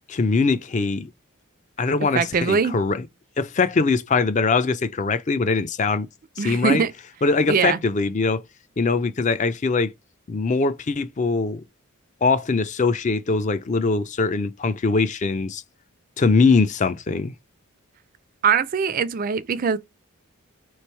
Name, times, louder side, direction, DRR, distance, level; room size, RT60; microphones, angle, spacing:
voice 1, 0.1-1.1 1.8-3.0 3.4-6.1 6.4-6.8 7.2-8.4 8.8-9.9 10.3-11.6 12.2-15.6 16.2-17.3, left 4 dB, 35° left, 0.4 m, -22 dB
voice 2, 2.1-2.8 6.4-6.9 7.5-7.8 18.4-19.8, right 6 dB, 40° right, 0.4 m, -22 dB
3.3 x 3.2 x 4.4 m
head